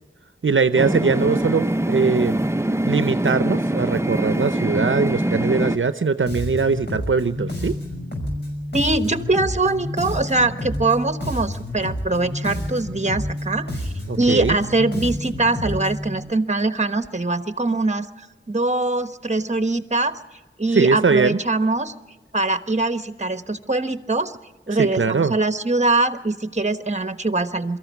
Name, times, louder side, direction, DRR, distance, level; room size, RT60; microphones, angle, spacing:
voice 1, 0.4-2.4 2.9-7.7 14.1-14.6 20.7-21.4 24.8-25.3, right 4 dB, 80° right, 11 dB, 0.6 m, -21 dB
sound 1, 0.8-5.8, right 1 dB, 15° right, 0.6 m, -23 dB
Bass guitar, 6.3-16.1, left 1 dB, 55° left, 5.8 m, -29 dB
voice 2, 8.7-13.7 14.2-20.2 20.6-21.9 22.3-24.3 24.7-27.8, right 2 dB, 35° right, 10 dB, 1.2 m, -22 dB
23.5 x 14.0 x 9.3 m, 1.2 s
wide cardioid pair, 45°, 20 cm